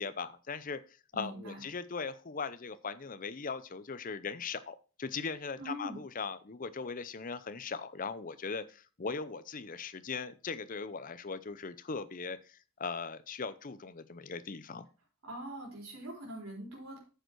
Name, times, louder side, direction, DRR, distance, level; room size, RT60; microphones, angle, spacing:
voice 1, 0.0-14.9, left 5 dB, 40° left, 13 dB, 0.6 m, -39 dB
voice 2, 1.1-1.6 5.6-6.0 15.2-17.0, equal, 85° right, -3 dB, 4.1 m, -42 dB
9.3 x 6.8 x 4.6 m, 0.35 s
head